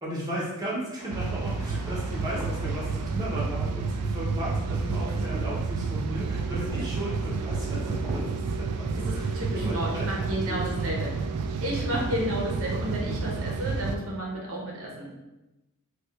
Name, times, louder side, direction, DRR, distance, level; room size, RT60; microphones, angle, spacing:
voice 1, 0.0-8.2 8.7-10.9 11.9-12.1, equal, 15° right, -6 dB, 0.8 m, -35 dB
sound 1, 1.0-8.2, equal, 15° left, 1.5 m, -44 dB
sound 2, 1.1-14.0, right 4 dB, 85° right, 0.3 m, -30 dB
voice 2, 9.1-11.2 11.6-15.1, equal, 65° right, -3 dB, 0.7 m, -32 dB
4.4 x 2.3 x 2.4 m, 1.0 s
head